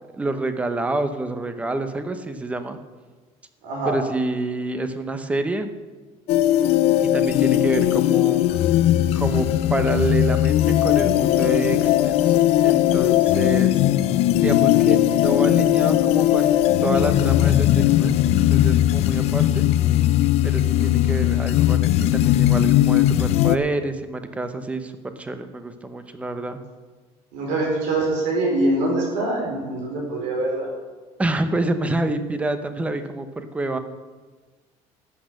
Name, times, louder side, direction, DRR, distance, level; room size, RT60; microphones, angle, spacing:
voice 1, 0.0-2.8 3.9-5.7 7.0-8.6 9.1-12.3 12.6-13.8 14.4-19.6 20.4-26.6 31.2-33.8, right 2 dB, 10° right, 9 dB, 0.7 m, -27 dB
voice 2, 3.6-4.0 27.3-30.7, right 2 dB, 85° right, -2 dB, 4.7 m, -24 dB
sound 1, 6.3-23.6, left 13 dB, 55° left, 0.5 m, -18 dB
12.5 x 8.5 x 6.5 m, 1.3 s
cardioid pair, 175°, 12 cm